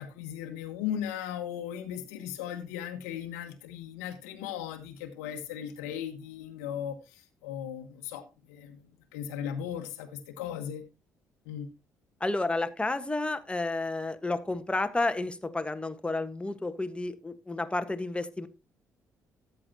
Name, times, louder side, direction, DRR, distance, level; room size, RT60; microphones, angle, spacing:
voice 1, 0.0-10.8 11.4-11.7, left 9 dB, 75° left, 5 dB, 1.1 m, -37 dB
voice 2, 12.2-18.5, left 2 dB, 15° left, 9 dB, 1.4 m, -31 dB
13.5 x 7.9 x 2.8 m, 0.27 s
figure-of-eight pair, 45°, 8 cm